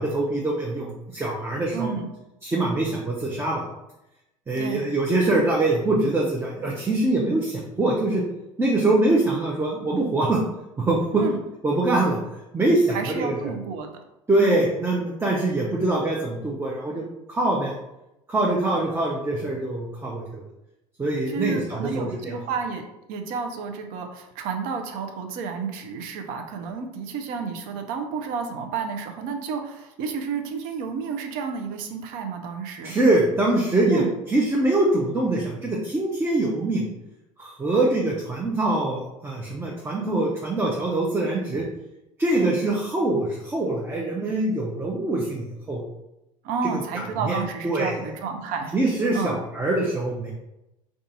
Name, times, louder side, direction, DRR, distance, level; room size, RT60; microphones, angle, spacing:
voice 1, 0.0-1.9 2.4-3.6 4.5-8.2 8.6-10.4 10.8-11.2 11.6-12.2 12.5-13.3 14.3-17.0 17.3-17.7 18.3-20.4 21.0-22.3 32.8-36.9 37.4-41.6 42.2-45.8 47.2-47.4 47.6-48.0 48.7-50.3, right 2 dB, 15° right, -2 dB, 0.6 m, -23 dB
voice 2, 1.7-2.1 4.6-4.9 11.1-11.4 12.9-13.9 14.4-14.6 21.3-33.0 33.9-34.1 42.3-42.6 46.4-48.8 49.1-49.4, right 5 dB, 55° right, 5 dB, 0.5 m, -31 dB
2.5 x 2.4 x 4.0 m, 0.90 s
hypercardioid pair, 75°, 17 cm